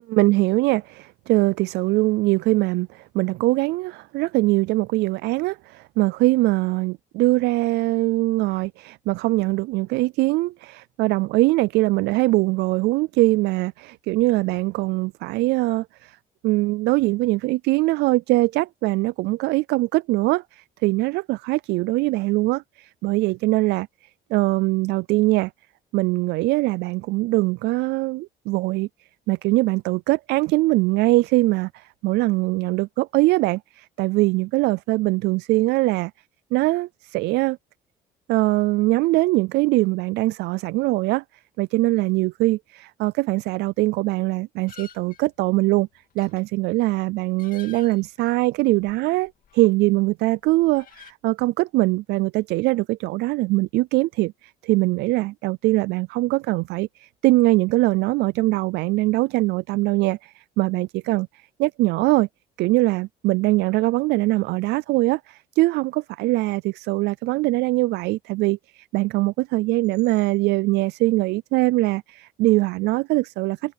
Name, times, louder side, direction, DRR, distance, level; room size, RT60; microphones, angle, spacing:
voice 1, 0.1-16.2 16.4-23.9 24.3-25.5 25.9-28.9 29.3-36.1 36.5-37.6 38.3-41.2 41.6-45.9 46.2-61.3 61.6-62.3 62.6-73.7, right 20 dB, 80° right, 0.4 m, -22 dB
sound 1, 44.7-50.1 50.3-51.1, left 8 dB, 55° left, 2.8 m, -51 dB
cardioid pair, 110°, 17 cm